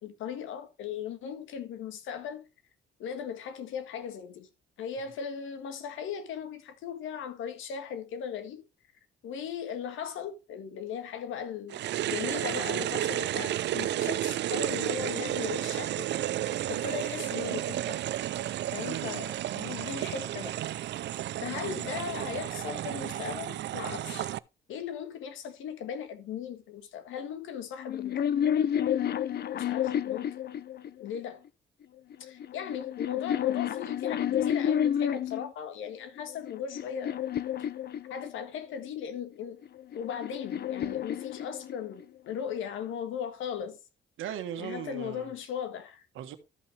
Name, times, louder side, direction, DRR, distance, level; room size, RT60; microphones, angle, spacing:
voice 1, 0.0-2.5 3.0-4.5 4.8-8.6 9.2-16.1 16.7-18.0 18.7-20.6 21.4-24.3 24.7-28.3 29.5-30.3 31.0-31.4 32.2-37.2 37.6-37.7 38.1-39.6 39.9-43.8 44.6-46.1, left 8 dB, 85° left, 1.7 m, -38 dB
sound 1, 11.7-24.4, right 13 dB, 60° right, 0.4 m, -32 dB
voice 2, 18.8-19.2 44.2-45.3 46.1-46.4, right 10 dB, 85° right, 1.4 m, -38 dB
sound 2, 27.8-31.2 32.1-35.5 36.2-38.6 39.6-42.0, left 9 dB, 55° left, 0.7 m, -30 dB
13.5 x 5.8 x 3.3 m
cardioid pair, 90°, 20 cm